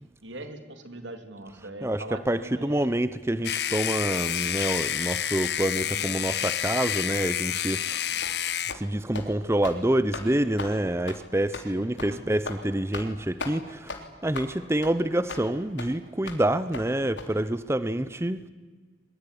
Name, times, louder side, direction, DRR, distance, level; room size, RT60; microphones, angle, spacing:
voice 1, 0.2-3.0 5.8-6.2 11.7-12.2, right 2 dB, 85° right, 7 dB, 3.2 m, -41 dB
voice 2, 1.8-8.3 8.7-18.4, right 1 dB, 15° right, 13 dB, 0.7 m, -27 dB
sound 1, 3.4-8.7, left 10 dB, 60° left, 0.8 m, -29 dB
sound 2, 8.2-8.4 8.7-8.9 9.1-9.3 9.6-9.8 10.1-10.3 10.6-10.7 11.1-11.2 11.5-11.7 12.0-12.1 12.4-12.6 12.9-13.1 13.4-13.5 13.9-14.0 14.3-14.5 14.8-14.9 15.3-15.4 15.8-15.9 16.3-16.4 16.7-16.8 17.2-17.3, left 3 dB, 85° left, 3.7 m, -36 dB
23.0 x 22.5 x 10.0 m, 1.4 s
head